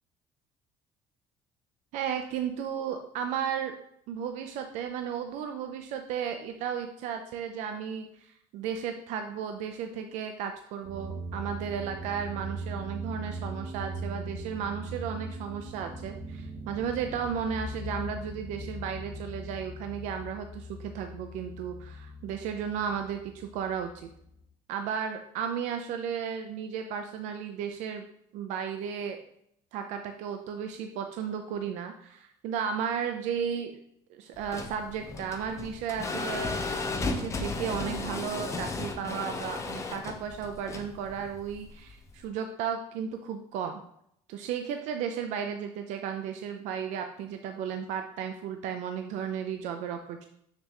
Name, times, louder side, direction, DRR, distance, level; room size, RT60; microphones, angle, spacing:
voice 1, 1.9-3.7 4.1-24.1 24.7-28.0 28.3-29.2 29.7-33.8 34.1-36.6 37.0-43.8 44.3-50.3, right 7 dB, 80° right, 6 dB, 0.7 m, -34 dB
sound 1, 10.8-24.4, right 1 dB, 40° right, 2.5 m, -40 dB
sound 2, 34.4-42.2, left 3 dB, 25° left, 0.8 m, -35 dB
6.7 x 6.7 x 3.0 m, 0.71 s
cardioid pair, 140°, 12 cm